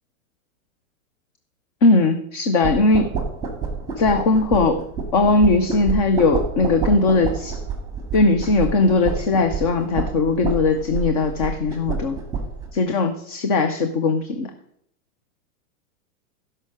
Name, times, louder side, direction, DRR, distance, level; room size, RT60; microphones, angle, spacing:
voice 1, 1.8-3.1 4.0-4.8 5.1-7.6 8.1-12.2 12.7-14.5, left 3 dB, 25° left, 7 dB, 0.5 m, -19 dB
sound 1, 2.6-12.7, right 5 dB, 10° right, 1.7 m, -29 dB
15.0 x 5.7 x 6.3 m, 0.73 s
supercardioid pair, 165°, 44 cm